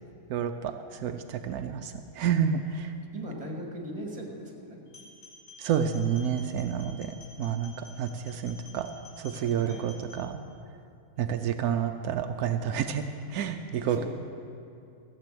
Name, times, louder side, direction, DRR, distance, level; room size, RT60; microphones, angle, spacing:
voice 1, 0.3-2.9 5.6-8.9 9.2-10.4 11.2-13.0 13.3-14.0, right 8 dB, 85° right, 7 dB, 1.1 m, -29 dB
voice 2, 3.1-4.8 9.3-9.8 13.9-14.0, right 1 dB, 25° right, 0 dB, 2.1 m, -39 dB
sound 1, 4.9-10.2, left 2 dB, 60° left, 3.4 m, -51 dB
15.0 x 7.8 x 7.6 m, 2.6 s
omnidirectional pair, 1.5 m